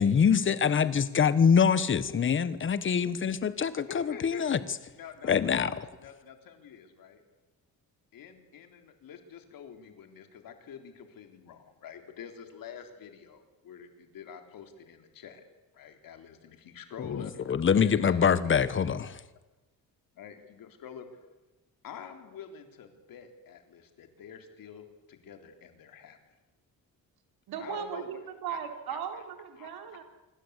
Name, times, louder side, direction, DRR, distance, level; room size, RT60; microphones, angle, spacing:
voice 1, 0.0-4.6 5.2-5.7 17.1-17.2 17.5-19.2, left 7 dB, 35° left, 15 dB, 1.3 m, -24 dB
voice 2, 3.9-4.4 5.0-7.2 8.1-15.4 15.7-19.1 20.2-21.1 21.8-26.2 27.6-28.1 28.5-28.6 28.9-29.2 29.6-30.0, left 7 dB, 65° left, 6 dB, 3.8 m, -47 dB
voice 3, 27.5-30.0, right 8 dB, 90° right, 5 dB, 4.0 m, -37 dB
26.5 x 24.0 x 8.3 m, 1.1 s
cardioid pair, 165°, 36 cm